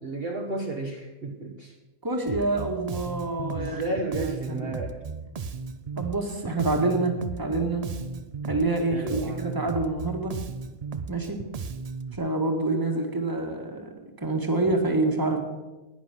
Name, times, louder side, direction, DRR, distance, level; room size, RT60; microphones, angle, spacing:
voice 1, 0.0-1.7 3.5-5.0 8.9-9.4, right 2 dB, 40° right, 1 dB, 1.2 m, -33 dB
voice 2, 2.0-3.8 4.1-4.7 6.0-7.9 8.5-10.4 11.1-11.4 12.2-13.9 14.2-15.4, right 2 dB, 15° right, 3 dB, 1.6 m, -27 dB
Bass guitar, 2.3-12.2, right 5 dB, 75° right, 0.3 m, -35 dB
10.5 x 9.7 x 7.7 m, 1.1 s
omnidirectional pair, 1.6 m